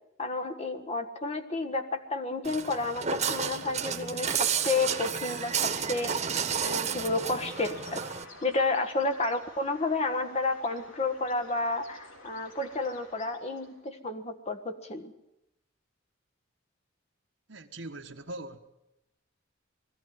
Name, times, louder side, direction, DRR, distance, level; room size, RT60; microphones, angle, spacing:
voice 1, 0.2-6.2 6.6-8.0 8.4-15.1, left 3 dB, 30° left, 1.5 m, -31 dB
Walk footsteps, 2.4-8.2, right 7 dB, 35° right, 1.5 m, -31 dB
Bird, 6.2-13.9, left 2 dB, 85° left, 3.6 m, -51 dB
voice 2, 17.5-18.6, right 2 dB, 65° right, 1.4 m, -41 dB
20.5 x 15.0 x 9.5 m
head